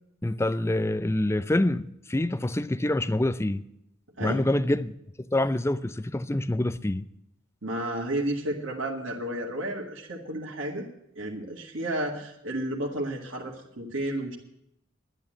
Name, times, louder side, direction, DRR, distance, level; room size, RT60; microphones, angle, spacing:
voice 1, 0.2-3.6 4.2-4.9 5.3-7.0, left 1 dB, 15° left, 0.5 m, -26 dB
voice 2, 7.6-10.9 11.2-14.4, right 1 dB, 70° right, 1.9 m, -32 dB
11.0 x 10.5 x 7.6 m
head